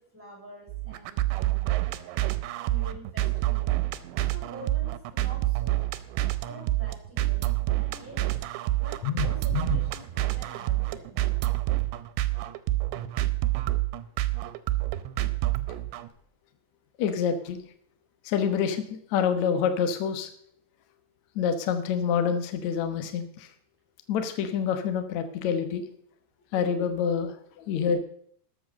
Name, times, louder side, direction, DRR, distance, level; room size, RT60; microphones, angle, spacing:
voice 1, 0.0-1.4 2.6-3.7 4.3-5.9 6.4-7.5 7.7-8.3 8.8-11.2, right 1 dB, 5° right, -2 dB, 5.5 m, -47 dB
sound 1, 0.7-16.1, right 16 dB, 85° right, 3.0 m, -28 dB
voice 2, 9.0-9.8 17.0-17.6 18.2-20.3 21.3-23.5 24.1-25.9 26.5-28.0, left 7 dB, 70° left, 8 dB, 1.8 m, -27 dB
13.0 x 8.0 x 6.4 m, 0.63 s
omnidirectional pair, 5.1 m